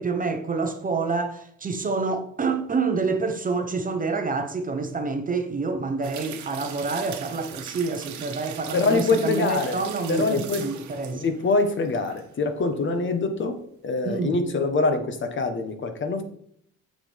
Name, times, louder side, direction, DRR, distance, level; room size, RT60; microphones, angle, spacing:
voice 1, 0.0-11.2 14.0-14.4, right 4 dB, 25° right, 0.8 m, -27 dB
sound 1, 6.0-12.3 12.6-12.7, right 9 dB, 65° right, 1.2 m, -40 dB
voice 2, 8.7-9.8 10.1-10.6 11.1-13.6 13.8-16.2, left 3 dB, 40° left, 1.1 m, -24 dB
7.6 x 6.9 x 3.4 m
cardioid pair, 120°, 31 cm